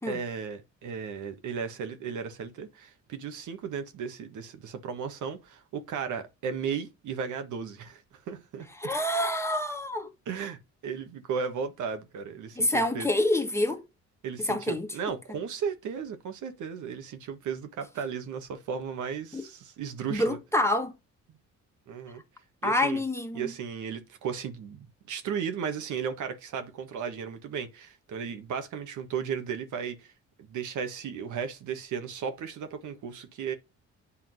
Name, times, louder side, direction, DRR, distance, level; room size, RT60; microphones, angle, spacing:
voice 1, 0.0-8.7 10.3-13.1 14.2-20.4 21.9-22.2 22.6-23.0 23.3-30.1 30.4-33.5, right 6 dB, 75° right, 1.6 m, -35 dB
voice 2, 8.8-10.1 12.6-13.8 14.4-14.9 19.3-19.4 20.1-20.9 22.6-23.5, left 1 dB, 10° left, 1.5 m, -27 dB
8.6 x 3.8 x 6.3 m
cardioid pair, 90°, 30 cm